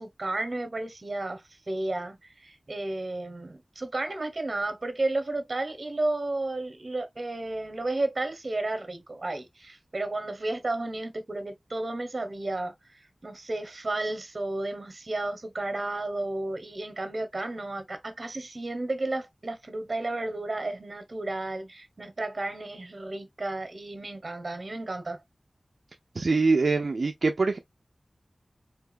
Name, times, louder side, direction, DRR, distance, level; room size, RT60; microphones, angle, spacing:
voice 1, 0.0-12.7 13.2-25.2, right 2 dB, 55° right, 1.3 m, -32 dB
voice 2, 26.1-27.6, right 3 dB, 80° right, 0.6 m, -24 dB
4.6 x 4.0 x 2.5 m
wide cardioid pair, 55°, 0 cm